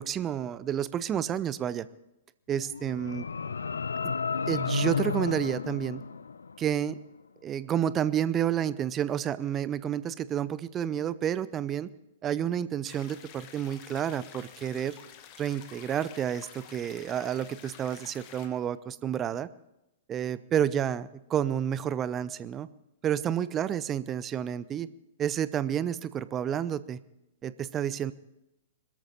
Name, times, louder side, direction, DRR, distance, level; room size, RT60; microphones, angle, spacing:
voice 1, 0.0-1.9 2.5-3.3 4.0-4.1 4.5-6.0 6.6-7.0 7.4-11.9 12.2-15.0 15.4-19.5 20.1-22.7 23.0-24.9 25.2-27.0 27.4-28.1, right 9 dB, 20° right, 17 dB, 0.6 m, -30 dB
sound 1, 2.6-6.8, left 5 dB, 70° left, 0.5 m, -32 dB
sound 2, 12.8-18.5, left 9 dB, 35° left, 1.9 m, -50 dB
22.5 x 13.5 x 4.2 m, 0.92 s
figure-of-eight pair, 110°, 0 cm